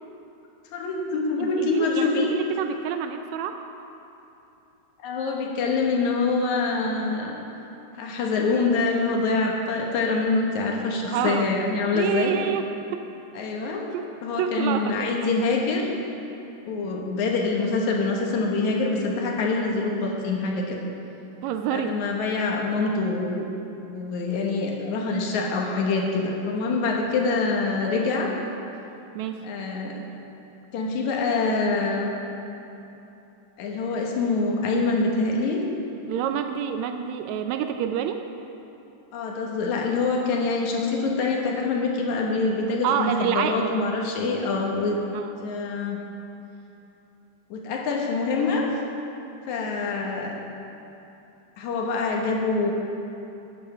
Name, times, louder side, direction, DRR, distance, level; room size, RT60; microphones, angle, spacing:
voice 1, 0.7-2.3 5.0-7.3 8.0-12.3 13.3-13.9 14.2-15.9 16.7-20.8 21.7-23.5 23.9-28.3 29.4-29.9 30.7-32.1 33.6-35.6 39.1-45.0 45.4-46.0 47.5-48.7 49.5-50.3 51.6-52.7, left 3 dB, 70° left, -1 dB, 2.5 m, -25 dB
voice 2, 1.4-3.6 11.0-11.5 11.9-13.1 13.9-14.1 14.4-15.1 21.4-22.0 29.1-29.4 36.1-38.2 42.8-43.7 45.1-45.3, right 8 dB, 85° right, 7 dB, 1.6 m, -27 dB
9.3 x 8.7 x 6.7 m, 2.9 s
omnidirectional pair, 3.7 m